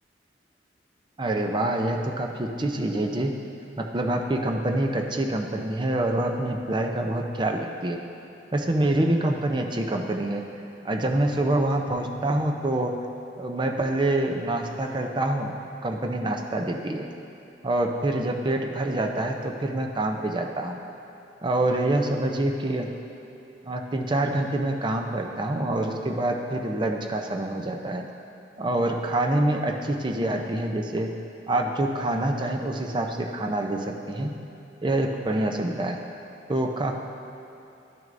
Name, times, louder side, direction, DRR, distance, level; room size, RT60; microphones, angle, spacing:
voice 1, 1.2-3.3 3.8-8.0 8.5-10.4 10.8-12.9 13.4-17.1 17.6-20.8 21.4-22.9 23.7-28.0 28.6-31.1 31.5-34.3 34.8-36.0 36.5-37.0, right 1 dB, 25° right, 2 dB, 0.5 m, -26 dB
12.0 x 6.2 x 2.6 m, 2.9 s
head